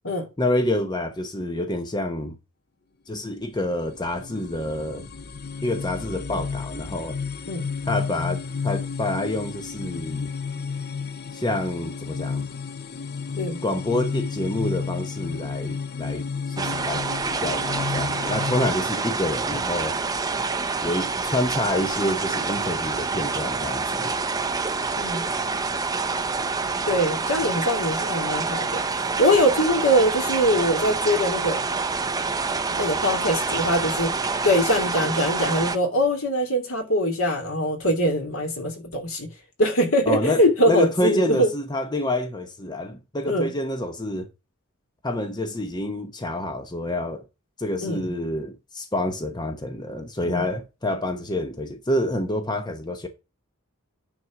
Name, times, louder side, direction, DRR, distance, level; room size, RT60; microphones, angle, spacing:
voice 1, 0.4-2.4 3.1-5.1 5.6-7.2 7.9-10.3 11.3-12.5 13.6-17.0 17.4-20.0 20.8-24.2 40.1-44.3 45.0-47.2 47.6-53.1, left 1 dB, 20° left, 0.9 m, -27 dB
sound 1, 3.4-18.7, left 5 dB, 50° left, 0.6 m, -32 dB
sound 2, 16.6-35.8, right 4 dB, 15° right, 0.6 m, -27 dB
voice 2, 26.9-28.8 29.2-31.6 32.7-34.1 34.4-39.3 39.6-41.5 43.3-43.5 47.8-48.0 50.3-50.4, equal, 75° left, 2.6 m, -22 dB
9.5 x 4.2 x 5.9 m
head